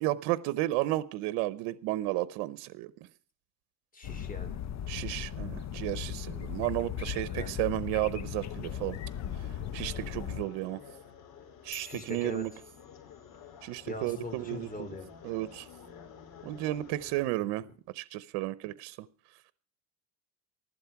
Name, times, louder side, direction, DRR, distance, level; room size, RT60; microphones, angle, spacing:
voice 1, 0.0-2.9 4.9-9.0 9.7-10.8 11.6-12.5 13.6-14.9 15.2-15.7 16.4-17.6 17.9-19.1, right 17 dB, 90° right, 17 dB, 0.8 m, -33 dB
voice 2, 3.9-4.6 7.3-7.5 11.8-12.4 13.9-15.1 17.3-17.6, left 2 dB, 20° left, 7 dB, 4.2 m, -41 dB
sound 1, 4.0-10.5, left 9 dB, 45° left, 1.1 m, -37 dB
sound 2, 8.4-17.3, left 8 dB, 65° left, 4.5 m, -51 dB
sound 3, 11.7-13.4, equal, ahead, 1.2 m, -51 dB
14.5 x 12.0 x 5.8 m, 0.40 s
cardioid pair, 105°, 37 cm